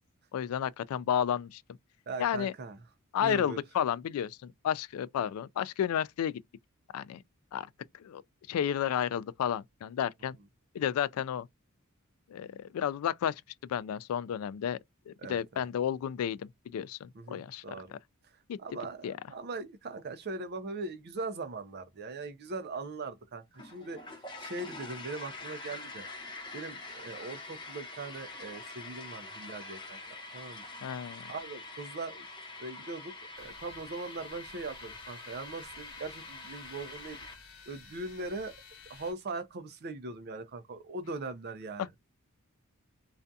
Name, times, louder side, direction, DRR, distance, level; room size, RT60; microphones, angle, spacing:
voice 1, 0.3-1.6 2.2-2.5 3.1-6.4 6.9-7.2 7.5-7.7 7.9-8.2 8.5-10.4 10.7-11.5 12.3-14.8 15.1-18.0 18.5-18.6 19.0-19.2 30.8-31.3 41.8-42.0, left 9 dB, 85° left, 0.3 m, -32 dB
voice 2, 2.1-2.8 3.2-3.6 5.2-5.3 15.2-15.4 17.2-17.9 18.6-24.0 24.4-26.1 26.5-30.0 30.3-30.6 31.3-32.2 32.6-37.2 37.7-38.6 38.9-42.0, right 3 dB, 50° right, 0.5 m, -40 dB
sound 1, 23.5-37.3, left 3 dB, 20° left, 0.8 m, -45 dB
sound 2, 33.3-39.1, left 5 dB, 65° left, 1.1 m, -54 dB
2.4 x 2.3 x 2.6 m
head